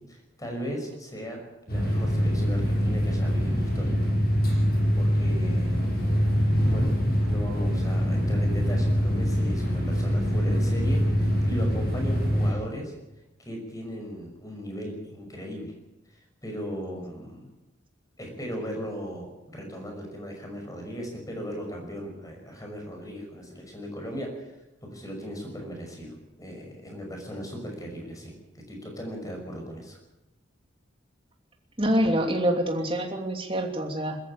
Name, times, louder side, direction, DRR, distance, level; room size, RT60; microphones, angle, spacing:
voice 1, 0.1-1.4 1.7-4.0 4.9-5.8 6.7-6.9 7.2-12.9 13.4-15.7 16.1-17.5 18.2-24.5 24.8-28.3 28.7-30.0, equal, 20° left, 2 dB, 5.9 m, -37 dB
sound 1, 1.7-12.5, equal, 50° left, 7.9 m, -24 dB
voice 2, 31.8-34.2, equal, 30° right, 3 dB, 3.0 m, -26 dB
22.0 x 14.0 x 8.7 m, 0.97 s
head